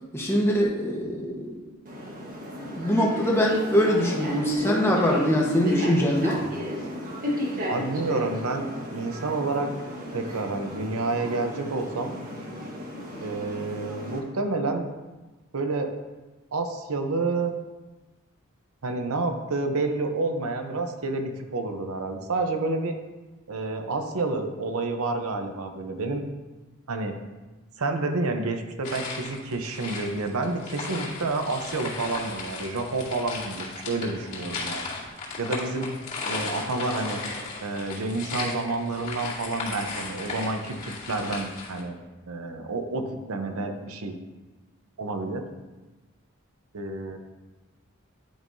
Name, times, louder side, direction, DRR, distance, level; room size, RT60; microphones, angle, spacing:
voice 1, 0.1-1.6 2.5-6.4, equal, 10° left, -2 dB, 1.1 m, -23 dB
sound 1, 1.9-14.2, equal, 40° right, 1.3 m, -34 dB
voice 2, 7.7-9.7 10.1-12.1 13.2-14.9 15.5-15.9 16.5-17.5 18.8-23.0 23.5-26.2 26.9-27.1 27.8-34.9 35.4-35.9 36.2-37.2 37.6-42.0 42.3-44.1 45.0-45.4 46.7-47.2, right 3 dB, 90° right, 6 dB, 0.8 m, -29 dB
sound 2, 28.8-41.8, left 3 dB, 35° left, 2.3 m, -36 dB
10.5 x 5.4 x 2.7 m, 1.2 s
head